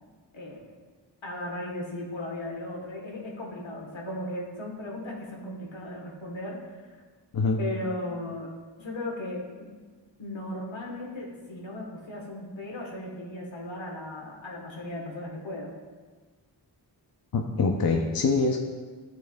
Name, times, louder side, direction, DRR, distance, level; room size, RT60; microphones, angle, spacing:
voice 1, 0.3-0.7 1.2-6.9 7.6-8.5 8.8-9.7 10.2-15.7, left 1 dB, 85° left, -1 dB, 1.3 m, -36 dB
voice 2, 7.3-7.7 17.3-18.6, left 4 dB, 55° left, 3 dB, 0.6 m, -24 dB
13.0 x 4.5 x 2.2 m, 1.4 s
wide cardioid pair, 55°, 45 cm